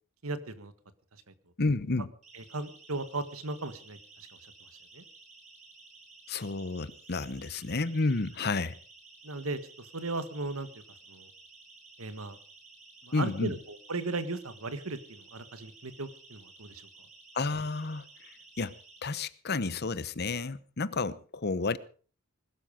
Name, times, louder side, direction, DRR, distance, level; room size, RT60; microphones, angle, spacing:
voice 1, 0.2-0.7 1.3-1.4 2.3-4.0 4.9-5.0 9.2-10.7 11.1-11.3 12.0-12.4 13.0-16.8, right 3 dB, 85° right, 1.6 m, -36 dB
voice 2, 1.6-2.1 6.3-8.8 13.1-13.5 17.3-21.8, left 3 dB, 50° left, 0.9 m, -31 dB
Siren, 2.2-19.0, right 3 dB, 35° right, 3.7 m, -54 dB
21.0 x 12.5 x 5.2 m
head